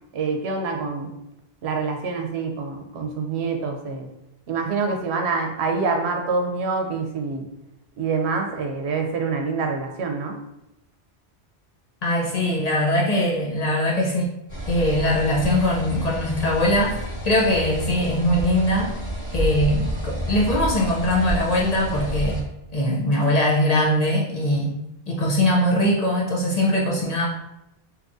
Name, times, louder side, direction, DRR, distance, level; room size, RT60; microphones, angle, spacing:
voice 1, 0.1-1.1 1.6-4.1 4.5-7.5 8.0-10.4, right 4 dB, 85° right, 3 dB, 0.9 m, -26 dB
voice 2, 12.0-14.3 14.7-18.9 19.3-22.4 22.7-24.7 25.1-27.3, left 1 dB, 45° left, -3 dB, 0.6 m, -21 dB
sound 1, 14.5-22.4, right 1 dB, 20° left, 1.1 m, -29 dB
3.5 x 2.9 x 2.5 m, 0.86 s
omnidirectional pair, 1.1 m